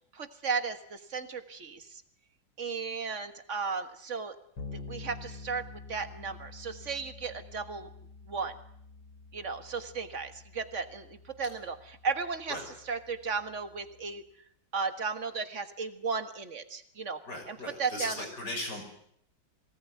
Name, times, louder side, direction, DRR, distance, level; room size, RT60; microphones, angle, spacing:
voice 1, 0.1-2.0 2.6-4.3 4.7-7.9 8.2-8.5 9.3-12.6 12.9-14.2 14.7-17.2 17.5-18.3, right 5 dB, 40° right, 8 dB, 1.8 m, -35 dB
Bass guitar, 4.6-14.2, left 4 dB, 75° left, 5.5 m, -48 dB
voice 2, 17.3-18.8, left 1 dB, 60° left, 4 dB, 6.5 m, -37 dB
23.5 x 18.5 x 9.4 m, 0.71 s
omnidirectional pair, 2.0 m